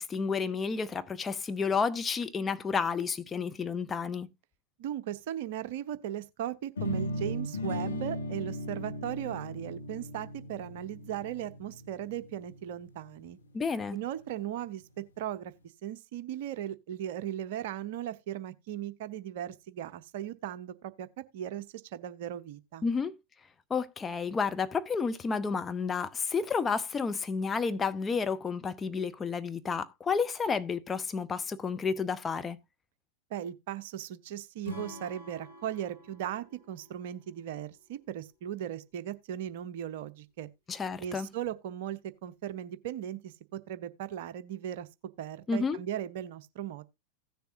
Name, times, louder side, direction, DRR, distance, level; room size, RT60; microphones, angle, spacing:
voice 1, 0.0-4.3 13.5-14.0 22.8-23.1 23.7-32.6 40.7-41.3 45.5-45.8, left 5 dB, 20° left, 0.6 m, -31 dB
voice 2, 4.8-13.4 13.9-14.8 15.2-15.5 15.8-21.6 21.9-22.8 33.3-40.5 41.0-44.9 45.2-46.8, right 11 dB, 50° right, 0.7 m, -37 dB
sound 1, 6.8-12.7, left 1 dB, 70° left, 1.0 m, -37 dB
Acoustic guitar / Strum, 34.6-37.9, left 1 dB, 85° left, 2.8 m, -47 dB
16.5 x 6.9 x 2.6 m
figure-of-eight pair, 90°, 0 cm